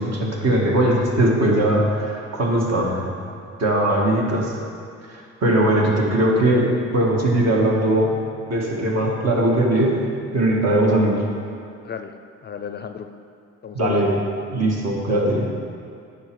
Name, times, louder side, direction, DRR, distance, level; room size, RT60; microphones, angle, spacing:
voice 1, 0.0-3.1 3.6-4.6 5.1-8.1 8.5-10.0 10.3-11.2 13.7-14.1 14.5-15.4, right 1 dB, 60° right, -2 dB, 1.7 m, -20 dB
voice 2, 12.4-13.1 13.6-14.1 15.1-15.4, left 7 dB, 35° left, 8 dB, 0.4 m, -31 dB
9.5 x 5.8 x 4.7 m, 2.4 s
cardioid pair, 90°, 30 cm